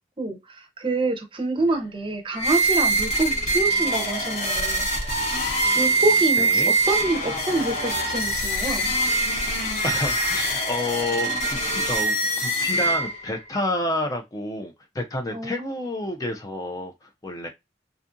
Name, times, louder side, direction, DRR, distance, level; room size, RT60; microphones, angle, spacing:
voice 1, 0.2-5.1 5.7-9.0 15.3-15.7, right 2 dB, 30° right, 0.6 m, -27 dB
sound 1, 2.3-13.4, right 2 dB, 40° left, 0.8 m, -24 dB
voice 2, 6.4-6.7 9.8-17.5, left 2 dB, 20° left, 0.4 m, -29 dB
2.5 x 2.4 x 2.5 m
head